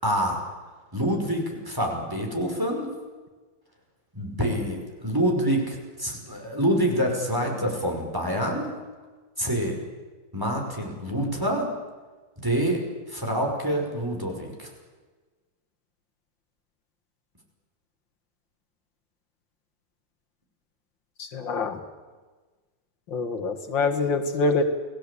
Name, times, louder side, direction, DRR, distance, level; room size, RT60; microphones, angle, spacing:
voice 1, 0.0-0.4 0.9-2.9 4.1-8.7 9.4-9.8 10.3-11.7 12.4-14.7, equal, 10° right, 1 dB, 5.6 m, -26 dB
voice 2, 21.2-21.8 23.1-24.6, left 3 dB, 75° left, 5 dB, 2.6 m, -25 dB
29.0 x 18.5 x 8.6 m, 1.3 s
omnidirectional pair, 2.1 m